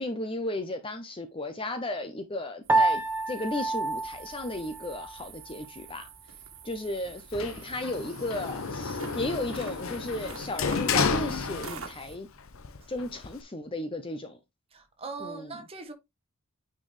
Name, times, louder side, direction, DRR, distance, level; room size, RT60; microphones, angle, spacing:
voice 1, 0.0-6.0 6.6-12.3 12.9-14.4 15.2-15.6, left 1 dB, 25° left, 0.6 m, -34 dB
sound 1, 2.6-12.2, right 6 dB, 65° right, 1.5 m, -47 dB
Piano, 2.7-5.2, right 3 dB, 10° right, 0.8 m, -28 dB
Sliding door, 7.3-12.1 12.5-13.4, left 5 dB, 70° left, 0.8 m, -31 dB
voice 2, 14.7-15.9, right 4 dB, 25° right, 1.3 m, -40 dB
9.3 x 4.5 x 3.2 m
head